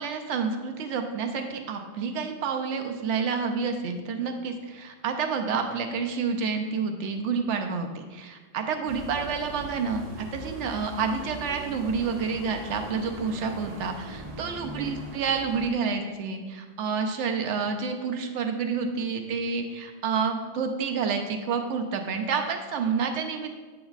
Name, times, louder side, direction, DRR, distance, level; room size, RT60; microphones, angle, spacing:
voice 1, 0.0-23.6, right 5 dB, 85° right, 5 dB, 0.9 m, -29 dB
sound 1, 8.9-15.7, right 1 dB, 45° right, 0.6 m, -40 dB
7.9 x 5.2 x 2.4 m, 1.4 s
omnidirectional pair, 1.2 m